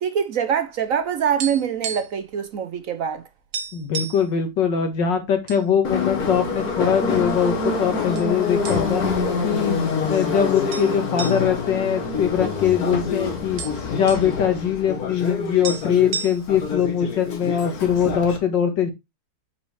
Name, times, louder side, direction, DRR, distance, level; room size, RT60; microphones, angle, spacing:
voice 1, 0.0-3.2, right 8 dB, 60° right, 0.9 m, -24 dB
sound 1, 0.8-2.3 2.5-2.7 3.1-3.2 3.5-4.3 5.0-5.6 6.0-6.1 6.8-7.5 8.2-8.3 8.7-9.2 9.5-9.6 10.7-12.8 13.1-13.2 13.4-14.3 15.3-15.4 15.6-16.7, right 6 dB, 85° right, 1.6 m, -33 dB
voice 2, 3.7-9.0 9.4-13.6 13.9-18.9, left 8 dB, 90° left, 2.1 m, -22 dB
Subway metro underground, 5.8-18.4, left 4 dB, 60° left, 1.8 m, -26 dB
6.0 x 5.5 x 3.3 m
omnidirectional pair, 1.9 m